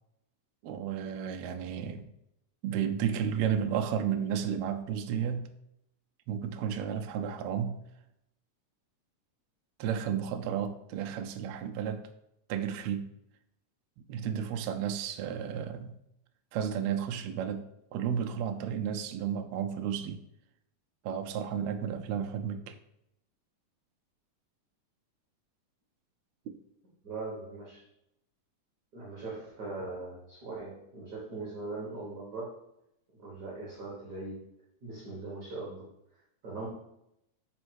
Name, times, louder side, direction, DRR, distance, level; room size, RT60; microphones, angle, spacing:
voice 1, 0.6-2.1 2.6-5.5 6.3-7.8 9.8-12.1 12.5-13.1 14.1-16.0 16.5-17.6 17.9-20.2 21.0-22.8 26.5-26.6, right 8 dB, 85° right, 6 dB, 1.5 m, -32 dB
voice 2, 27.0-27.8 28.9-32.5 33.2-34.4 34.8-35.8 36.4-36.7, right 3 dB, 50° right, -5 dB, 1.3 m, -40 dB
5.3 x 4.2 x 4.6 m, 0.82 s
omnidirectional pair, 3.6 m